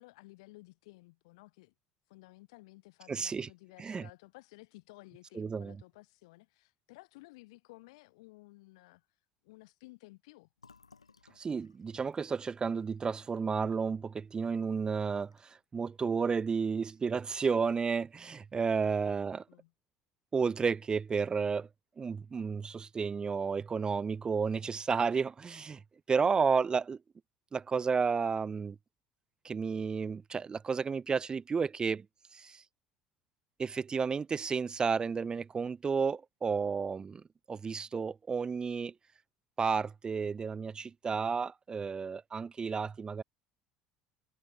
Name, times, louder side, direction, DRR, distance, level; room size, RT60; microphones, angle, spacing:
voice 1, 0.0-1.7 2.1-9.1 9.4-10.5 18.9-19.0 19.5-19.7 36.6-36.8, left 22 dB, 70° left, 1.8 m, -55 dB
voice 2, 3.1-3.5 3.8-4.1 5.4-5.8 11.4-19.4 20.3-21.7 22.0-25.8 26.1-27.0 27.5-28.8 29.4-32.1 32.3-32.6 33.6-37.2 37.5-38.9 39.6-43.2, right 5 dB, 25° right, 0.5 m, -32 dB
Fill (with liquid), 10.6-14.2 14.6-14.7 15.0-15.6, left 5 dB, 90° left, 2.0 m, -64 dB
figure-of-eight pair, 65°, 3 cm